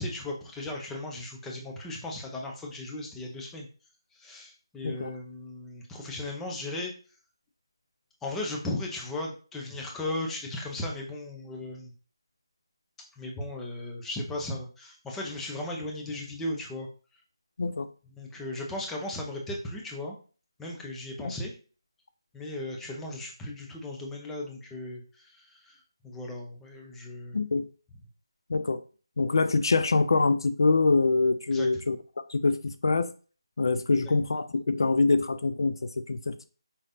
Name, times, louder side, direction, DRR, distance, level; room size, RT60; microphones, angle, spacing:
voice 1, 0.0-3.7 4.1-6.9 8.2-11.9 13.2-16.9 18.1-20.2 20.6-21.5 22.3-25.8 26.0-27.4 31.5-31.7 33.9-34.0, left 1 dB, 5° left, 0.7 m, -36 dB
voice 2, 17.6-17.9 21.2-21.3 27.3-27.7 28.5-28.8 29.2-32.0 32.3-33.1 33.6-36.5, left 3 dB, 60° left, 0.4 m, -25 dB
5.3 x 3.2 x 2.6 m
figure-of-eight pair, 160°, 3 cm